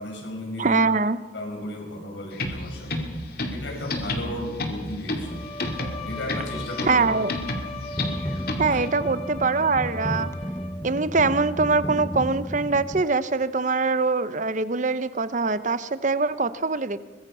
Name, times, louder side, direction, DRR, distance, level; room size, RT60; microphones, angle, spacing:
voice 1, 0.0-0.8 1.3-3.1 3.5-5.5 6.0-7.0 8.7-8.9, left 1 dB, 75° left, 2 dB, 5.5 m, -34 dB
voice 2, 0.6-1.2 6.9-7.3 8.6-10.3 10.8-17.1, right 4 dB, 40° right, 14 dB, 0.8 m, -23 dB
sound 1, 2.3-8.9, left 1 dB, 55° left, 2.4 m, -31 dB
Bowed string instrument, 5.2-11.0, left 2 dB, 30° left, 1.7 m, -38 dB
sound 2, 7.9-13.0, left 1 dB, 15° left, 0.7 m, -33 dB
23.0 x 20.5 x 5.5 m, 1.3 s
head